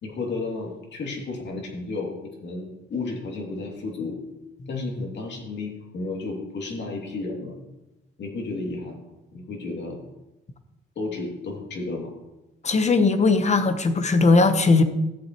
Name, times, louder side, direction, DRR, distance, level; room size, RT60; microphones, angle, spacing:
voice 1, 0.0-4.2 4.7-7.5 8.2-9.0 9.3-10.0 11.0-12.1, left 3 dB, 65° left, 0 dB, 2.7 m, -32 dB
voice 2, 12.6-14.8, left 3 dB, 35° left, 9 dB, 1.1 m, -19 dB
13.5 x 8.0 x 3.1 m, 0.97 s
cardioid pair, 90°, 20 cm